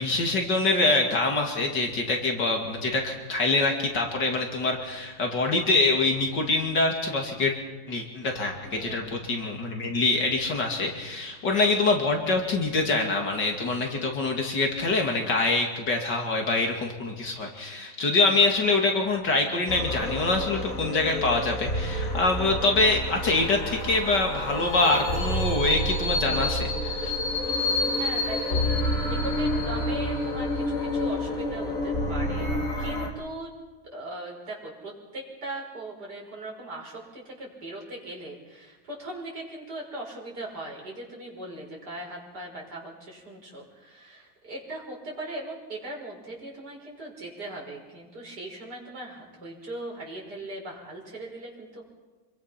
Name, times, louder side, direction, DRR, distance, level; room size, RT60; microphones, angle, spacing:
voice 1, 0.0-7.5 7.9-27.1, left 3 dB, 70° left, 2 dB, 3.0 m, -25 dB
voice 2, 8.6-9.3 27.4-32.5 32.8-33.5 33.9-51.8, right 1 dB, 60° right, -2 dB, 6.2 m, -39 dB
sound 1, 19.7-33.1, left 1 dB, 45° left, 3.3 m, -28 dB
26.5 x 22.0 x 5.9 m, 1.2 s
omnidirectional pair, 2.0 m